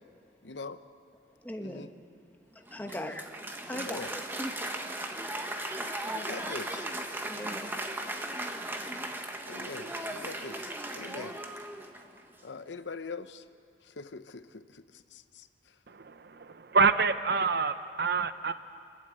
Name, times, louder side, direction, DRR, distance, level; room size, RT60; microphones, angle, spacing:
voice 1, 0.4-0.8 1.6-1.9 3.7-4.1 6.1-6.8 7.3-7.7 9.5-10.7 10.9-11.4 12.4-13.4 14.0-14.8 15.1-15.5, left 4 dB, 80° left, 11 dB, 0.8 m, -42 dB
voice 2, 1.4-1.9 2.5-3.2 3.7-4.5 5.4-5.5 6.0-6.6 7.3-7.8, left 1 dB, 10° left, 4 dB, 1.1 m, -40 dB
Applause, 2.6-12.2, right 1 dB, 10° right, 1.1 m, -37 dB
voice 3, 15.9-18.5, right 4 dB, 60° right, 11 dB, 0.7 m, -27 dB
29.5 x 11.5 x 8.0 m, 2.4 s
head